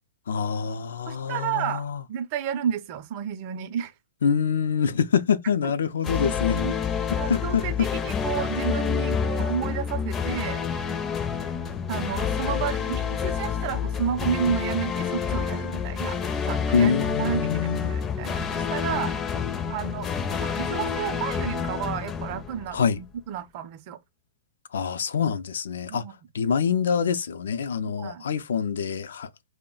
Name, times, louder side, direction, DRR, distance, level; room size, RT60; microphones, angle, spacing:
voice 1, 0.3-2.0 4.2-6.6 7.3-7.6 16.7-17.9 22.7-23.0 24.7-26.0 26.3-29.3, left 6 dB, 80° left, 0.4 m, -25 dB
voice 2, 1.1-3.9 5.6-5.7 6.6-6.8 7.1-10.6 11.9-16.2 16.4-16.9 17.2-19.1 19.7-20.1 20.4-24.0 25.9-26.1 27.8-28.2, right 9 dB, 40° right, 0.5 m, -31 dB
sound 1, 6.0-23.1, left 7 dB, 20° left, 0.5 m, -28 dB
2.3 x 2.1 x 3.7 m
hypercardioid pair, 145°, 0 cm